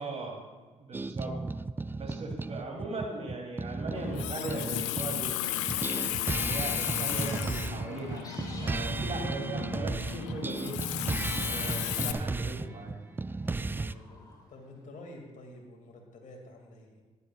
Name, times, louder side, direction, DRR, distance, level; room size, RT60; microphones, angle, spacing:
voice 1, 0.0-0.4 0.8-1.4 2.0-5.5 5.9-8.2 8.6-10.8 11.4-13.0, right 3 dB, 45° right, 0 dB, 2.9 m, -39 dB
sound 1, 0.9-5.3 5.7-13.9, right 3 dB, 15° right, 0.3 m, -34 dB
Water tap faucet, 3.9-12.1, left 13 dB, 85° left, 0.5 m, -34 dB
sound 2, 4.0-14.8, left 2 dB, 25° left, 3.4 m, -54 dB
voice 2, 13.4-17.0, left 1 dB, 55° left, 1 dB, 2.3 m, -50 dB
14.0 x 11.0 x 2.4 m, 1.3 s
hypercardioid pair, 45°, 15 cm